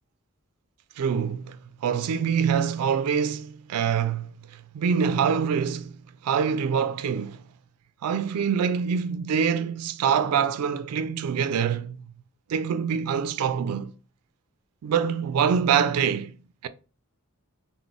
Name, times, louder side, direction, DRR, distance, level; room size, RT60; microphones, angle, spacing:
voice 1, 1.0-5.9 6.2-7.4 8.0-12.0 12.5-13.9 14.8-16.4 16.6-16.7, right 7 dB, 85° right, 0.3 m, -25 dB
3.8 x 2.1 x 3.5 m
head